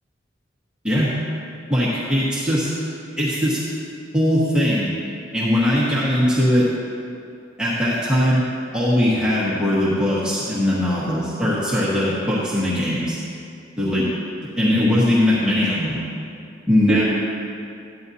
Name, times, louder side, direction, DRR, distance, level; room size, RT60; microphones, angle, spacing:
voice 1, 1.7-2.9 3.2-3.6 4.1-4.9 5.3-6.7 7.6-8.4 8.7-13.2 13.8-14.0 14.6-16.0 16.7-17.0, left 1 dB, 5° right, -9 dB, 1.3 m, -20 dB
13.5 x 9.7 x 2.8 m, 2.5 s
head